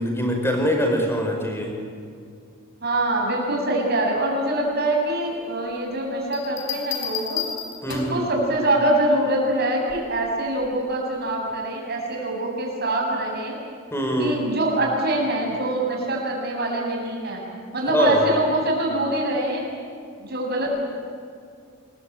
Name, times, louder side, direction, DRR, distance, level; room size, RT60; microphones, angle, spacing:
voice 1, 0.0-1.7 7.8-8.3 13.9-14.5 17.9-18.2, equal, 10° left, 2 dB, 5.2 m, -23 dB
voice 2, 2.8-7.4 7.9-13.6 14.2-17.4 17.7-19.7 20.2-20.7, right 1 dB, 50° right, -1 dB, 8.0 m, -24 dB
sound 1, 6.3-8.3 9.9-10.2, left 9 dB, 60° left, 5.0 m, -31 dB
27.5 x 22.5 x 9.1 m, 2.3 s
head